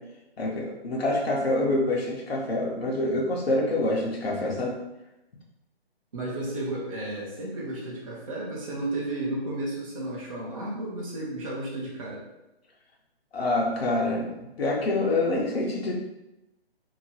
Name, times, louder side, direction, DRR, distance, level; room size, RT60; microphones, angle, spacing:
voice 1, 0.4-4.7 13.3-15.9, left 2 dB, 70° left, -3 dB, 0.9 m, -26 dB
voice 2, 6.1-12.2, right 1 dB, 35° right, -5 dB, 0.6 m, -33 dB
2.9 x 2.7 x 2.7 m, 0.95 s
hypercardioid pair, 160°, 31 cm